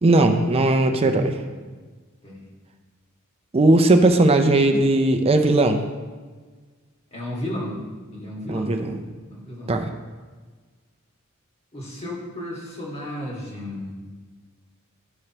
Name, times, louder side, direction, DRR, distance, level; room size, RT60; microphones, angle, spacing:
voice 1, 0.0-1.4 3.5-5.8 8.5-9.0 9.7-9.8, right 2 dB, 30° right, 6 dB, 0.5 m, -18 dB
voice 2, 1.0-1.6 2.2-2.5 7.1-7.7 8.1-8.7 9.3-9.8 11.7-14.0, left 1 dB, 30° left, -4 dB, 1.8 m, -34 dB
12.0 x 4.9 x 2.9 m, 1.4 s
head